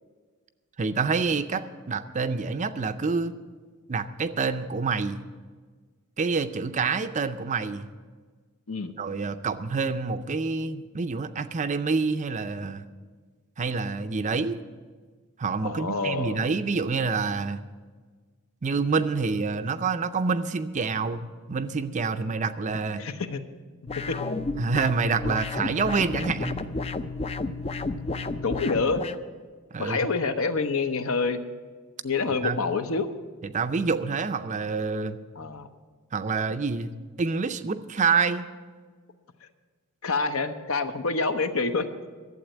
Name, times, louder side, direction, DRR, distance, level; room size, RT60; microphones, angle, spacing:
voice 1, 0.8-3.3 3.9-5.3 6.2-7.9 9.0-12.8 13.6-14.6 15.4-17.6 18.6-23.0 24.6-26.6 29.7-30.0 32.4-32.6 33.4-35.2 36.1-38.5, right 4 dB, 35° right, 11 dB, 0.5 m, -27 dB
voice 2, 15.6-16.4 23.0-23.4 24.1-24.2 28.4-29.0 29.8-31.4 32.0-33.1 35.4-35.7 40.0-41.9, left 4 dB, 65° left, 9 dB, 0.8 m, -27 dB
sound 1, 23.9-29.2, left 3 dB, 25° left, 0.4 m, -32 dB
12.0 x 7.8 x 9.1 m, 1.5 s
head